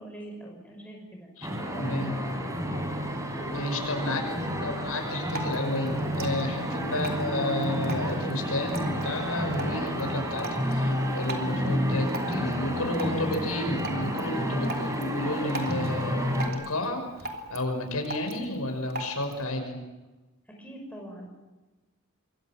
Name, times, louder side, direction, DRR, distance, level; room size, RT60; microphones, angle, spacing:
voice 1, 0.0-1.3 4.0-4.8 12.7-13.3 14.5-15.0 20.5-21.4, right 1 dB, 5° left, 0 dB, 6.0 m, -44 dB
sound 1, 1.4-16.5, equal, 15° right, 4.0 m, -30 dB
voice 2, 1.7-2.2 3.5-4.2 4.6-17.0 17.5-19.8, left 1 dB, 85° left, 4 dB, 6.1 m, -31 dB
Drip, 5.0-19.5, right 1 dB, 45° right, 3.1 m, -41 dB
26.5 x 23.0 x 7.5 m, 1.1 s
head